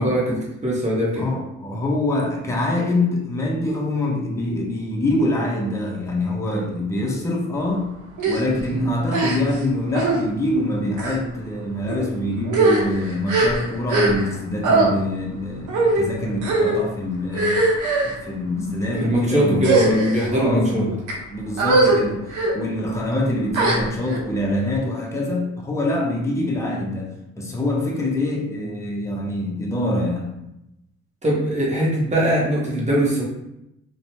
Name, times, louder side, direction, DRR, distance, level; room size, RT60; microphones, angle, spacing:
voice 1, 0.0-1.3 8.7-8.9 19.0-20.8 31.2-33.2, equal, 25° right, -4 dB, 1.0 m, -21 dB
voice 2, 1.2-7.8 8.2-17.7 18.0-20.0 20.3-21.0 21.3-22.2 22.5-27.1 27.4-30.4, left 1 dB, 10° left, -1 dB, 0.6 m, -25 dB
sound 1, 8.2-8.4 9.1-9.6 9.9-10.2 10.9-11.2 11.9-12.0 12.4-14.4 14.6-14.9 15.7-16.0 16.4-16.8 17.3-18.1 18.8-19.1 19.6-20.3 20.9-21.1 21.6-22.0 22.3-22.5 23.5-24.2, right 3 dB, 80° right, 0.7 m, -20 dB
2.6 x 2.1 x 3.0 m, 0.85 s
cardioid pair, 90°, 30 cm